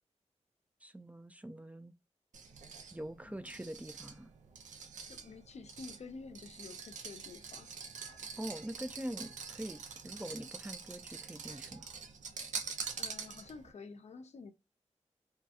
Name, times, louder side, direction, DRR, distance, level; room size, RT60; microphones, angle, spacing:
voice 1, 0.8-1.9 2.9-4.3 8.4-11.9, right 1 dB, 10° right, 0.3 m, -44 dB
sound 1, 2.3-13.7, right 5 dB, 80° right, 0.4 m, -45 dB
voice 2, 3.3-3.6 5.1-7.7 8.1-8.4 12.9-14.5, left 4 dB, 65° left, 0.4 m, -50 dB
2.7 x 2.2 x 2.3 m
cardioid pair, 50°, 12 cm